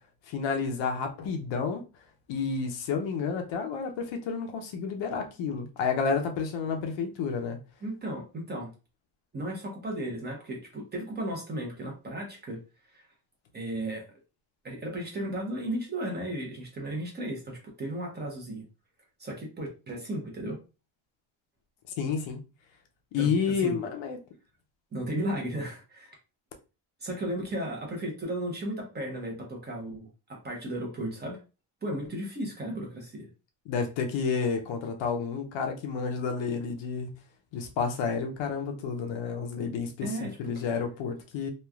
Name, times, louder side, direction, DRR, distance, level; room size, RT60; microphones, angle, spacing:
voice 1, 0.3-1.8 2.3-7.6 22.0-22.4 23.1-24.2 33.7-37.1 37.5-41.5, left 5 dB, 65° left, 0.7 m, -30 dB
voice 2, 7.8-8.7 9.3-12.6 12.9-13.0 13.5-14.0 14.6-18.6 19.2-20.6 23.2-23.3 23.6-23.8 24.9-26.1 27.0-31.4 31.8-33.3 40.0-40.5, right 1 dB, 20° right, 0.7 m, -35 dB
3.1 x 2.4 x 2.3 m
cardioid pair, 155°, 49 cm